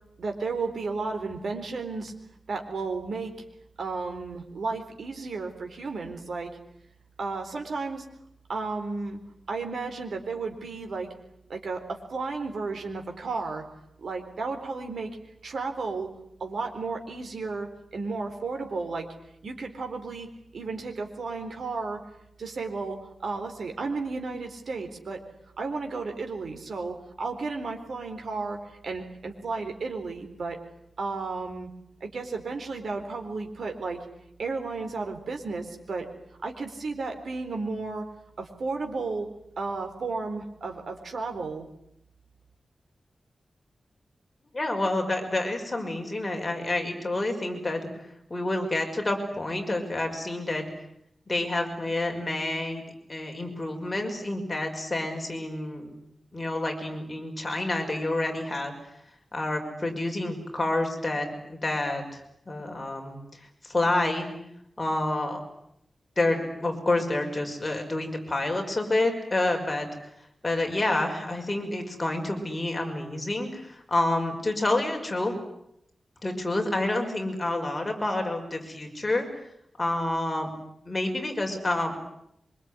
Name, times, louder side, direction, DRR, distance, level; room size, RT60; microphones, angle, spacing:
voice 1, 0.2-2.1 2.5-3.3 3.8-6.5 7.2-8.0 8.5-9.2 9.5-11.1 11.5-13.6 14.0-15.1 15.4-16.1 16.4-19.1 19.4-22.0 22.4-25.2 25.6-28.6 28.8-30.6 31.0-31.7 32.0-34.0 34.4-36.1 36.4-38.0 38.4-39.3 39.6-41.6, right 4 dB, 70° right, 4 dB, 4.1 m, -33 dB
voice 2, 44.5-47.9 48.3-50.7 51.3-52.8 53.1-56.0 56.3-58.7 59.3-63.2 63.6-64.3 64.8-65.4 66.2-69.9 70.4-75.3 76.2-79.2 79.8-80.5 80.9-82.0, left 2 dB, 20° left, 2 dB, 5.8 m, -28 dB
25.0 x 23.5 x 9.8 m, 0.76 s
wide cardioid pair, 135°, 0 cm